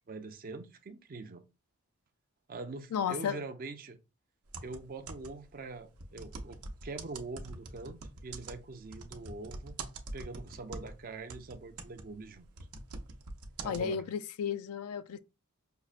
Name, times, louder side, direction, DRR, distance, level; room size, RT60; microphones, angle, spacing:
voice 1, 0.1-1.4 2.5-4.0 4.6-9.7 10.1-12.5 13.6-14.0, right 3 dB, 40° right, 0.4 m, -43 dB
voice 2, 2.9-3.4 13.6-15.2, left 7 dB, 75° left, 0.3 m, -33 dB
sound 1, 4.5-5.5 6.0-11.0 11.3-13.8, right 3 dB, 85° right, 0.6 m, -44 dB
5.3 x 2.1 x 2.4 m
head